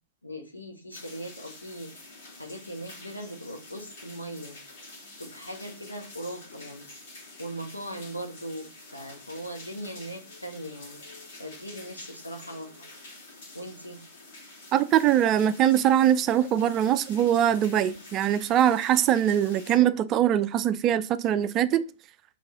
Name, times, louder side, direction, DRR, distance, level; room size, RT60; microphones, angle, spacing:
voice 1, 0.2-2.1 2.4-4.6 5.2-6.9 7.4-11.0 11.4-12.9 13.5-14.0, right 1 dB, 90° left, 1.0 m, -39 dB
sound 1, 0.9-19.8, left 2 dB, 55° left, 2.1 m, -48 dB
voice 2, 14.7-21.8, right 10 dB, 30° right, 0.3 m, -22 dB
4.4 x 3.7 x 3.0 m
figure-of-eight pair, 110°, 0 cm